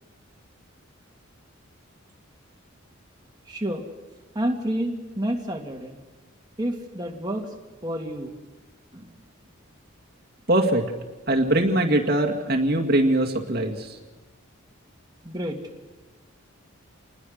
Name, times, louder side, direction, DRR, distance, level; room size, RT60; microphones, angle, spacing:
voice 1, 3.5-3.8 4.3-6.0 6.6-7.5 7.8-8.3 8.9-9.2 15.2-15.6, right 1 dB, 20° right, 1 dB, 2.2 m, -29 dB
voice 2, 10.5-10.9 11.3-14.0, right 1 dB, 45° right, 1 dB, 2.1 m, -22 dB
29.0 x 21.0 x 6.5 m, 1.2 s
head